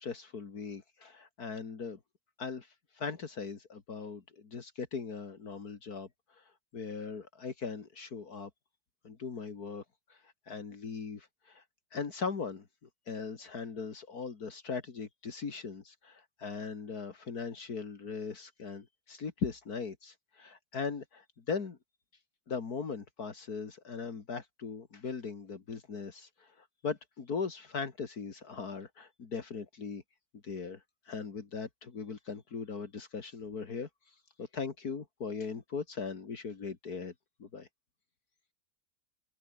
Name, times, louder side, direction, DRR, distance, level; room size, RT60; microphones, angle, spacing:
voice 1, 0.0-2.0 2.4-8.5 9.0-9.8 10.1-11.6 11.9-12.7 13.1-21.8 22.5-30.0 30.4-37.1 37.4-37.7, left 5 dB, 70° left, 2.7 m, -39 dB
open air
omnidirectional pair, 1.7 m